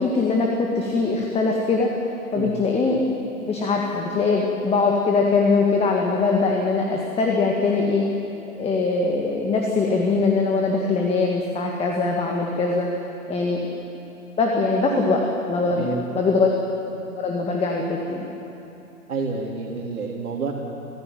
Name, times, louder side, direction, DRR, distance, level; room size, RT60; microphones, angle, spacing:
voice 1, 0.0-1.9 2.3-3.1 3.4-8.1 8.6-12.9 13.3-13.7 14.4-15.2 15.5-16.5 17.2-18.3, left 3 dB, 15° left, 0 dB, 1.8 m, -22 dB
voice 2, 15.8-16.1 19.1-20.5, right 4 dB, 70° right, -4 dB, 3.3 m, -28 dB
24.0 x 15.5 x 9.2 m, 3.0 s
hypercardioid pair, 125°, 43 cm